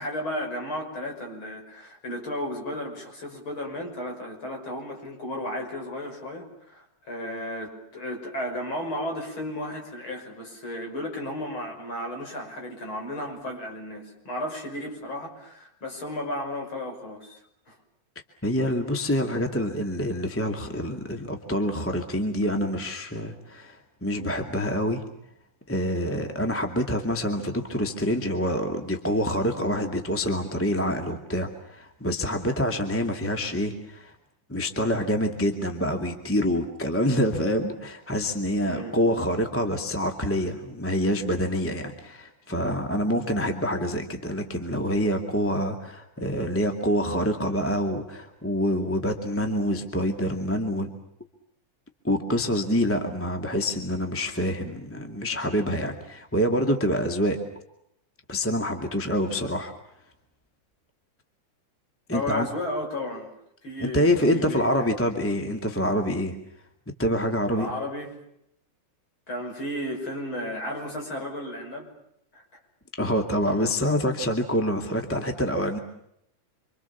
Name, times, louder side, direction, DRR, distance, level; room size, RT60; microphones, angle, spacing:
voice 1, 0.0-17.4 17.7-17.8 38.6-39.0 62.1-63.3 63.6-64.9 67.5-68.2 69.3-71.9 72.3-72.4, left 1 dB, 40° left, 2 dB, 6.7 m, -34 dB
voice 2, 18.4-25.0 25.7-34.1 34.5-50.9 52.0-57.4 58.3-59.7 62.1-62.5 63.8-66.3 67.0-67.7 73.0-75.8, equal, 5° left, 4 dB, 1.8 m, -26 dB
27.0 x 26.5 x 7.2 m, 0.76 s
omnidirectional pair, 3.4 m